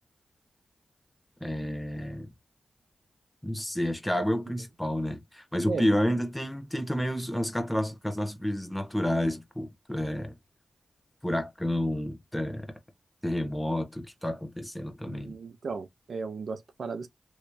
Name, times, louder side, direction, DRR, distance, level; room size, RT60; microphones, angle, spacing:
voice 1, 1.4-2.3 3.4-10.3 11.2-12.7 13.2-15.4, left 1 dB, 10° left, 1.3 m, -30 dB
voice 2, 15.1-17.1, right 4 dB, 70° right, 0.7 m, -35 dB
3.2 x 3.2 x 2.8 m
cardioid pair, 55°, 0 cm